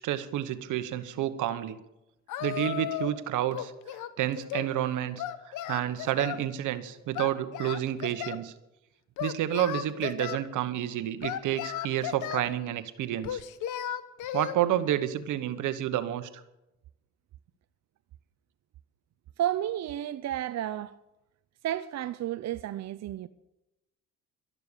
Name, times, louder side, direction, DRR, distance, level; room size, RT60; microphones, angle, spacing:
voice 1, 0.0-1.8 2.4-3.7 4.2-5.2 5.7-8.5 9.2-13.4 14.3-16.3, right 12 dB, 85° right, 1.1 m, -30 dB
Singing, 2.3-3.2 3.5-4.7 5.2-6.4 7.1-8.4 9.2-10.4 11.2-12.5 13.2-14.6, left 11 dB, 85° left, 1.0 m, -35 dB
voice 2, 19.4-20.9 21.6-23.3, right 12 dB, 60° right, 0.6 m, -32 dB
12.5 x 12.0 x 6.8 m
cardioid pair, 90°, 30 cm